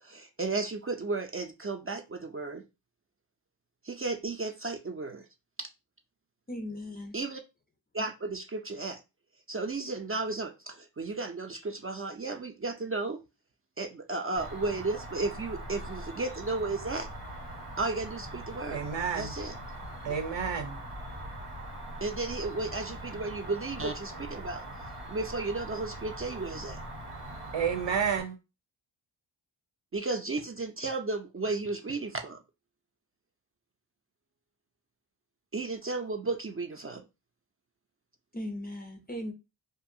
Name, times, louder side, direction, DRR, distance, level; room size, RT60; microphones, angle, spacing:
voice 1, 0.0-2.6 3.8-5.3 7.1-7.4 7.9-9.0 9.5-13.2 13.8-17.1 17.8-18.8 19.1-19.5 22.0-24.6 25.1-26.8 29.9-32.4 35.5-37.0, right 3 dB, 30° right, 0.4 m, -34 dB
voice 2, 6.5-7.1 38.3-39.3, left 1 dB, 20° left, 0.6 m, -38 dB
Cricket, 14.4-28.2, right 1 dB, 90° right, 1.3 m, -42 dB
voice 3, 18.7-19.3 20.0-20.8 27.5-28.4, right 7 dB, 60° right, 0.9 m, -30 dB
2.5 x 2.3 x 2.6 m
cardioid pair, 60°, 49 cm